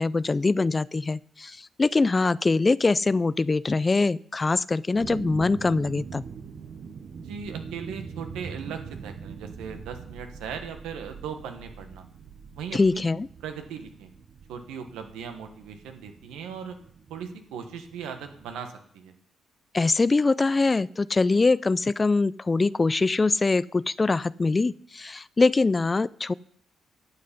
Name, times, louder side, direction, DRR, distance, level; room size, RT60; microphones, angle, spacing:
voice 1, 0.0-6.2 12.7-13.3 19.7-26.3, left 3 dB, 30° left, 20 dB, 0.3 m, -23 dB
sound 1, 4.9-18.6, right 5 dB, 60° right, 1.0 m, -43 dB
voice 2, 7.2-12.0 12.5-13.0 13.4-14.1 14.5-16.8 17.1-19.1, right 7 dB, 90° right, 6 dB, 1.3 m, -38 dB
11.5 x 7.6 x 5.2 m, 0.65 s
supercardioid pair, 70°, 0 cm